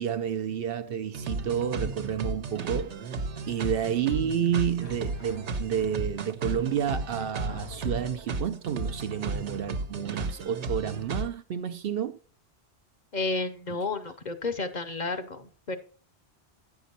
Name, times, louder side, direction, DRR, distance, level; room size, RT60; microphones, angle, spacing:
voice 1, 0.0-2.9 3.5-12.2, right 9 dB, 65° right, 0.7 m, -30 dB
sound 1, 1.1-11.3, right 3 dB, 85° right, 1.2 m, -34 dB
sound 2, 4.8-6.3 7.0-7.1 7.5-8.3, left 3 dB, 75° left, 2.0 m, -44 dB
voice 2, 13.1-15.8, left 3 dB, 45° left, 0.8 m, -31 dB
9.2 x 6.6 x 4.2 m
omnidirectional pair, 1.1 m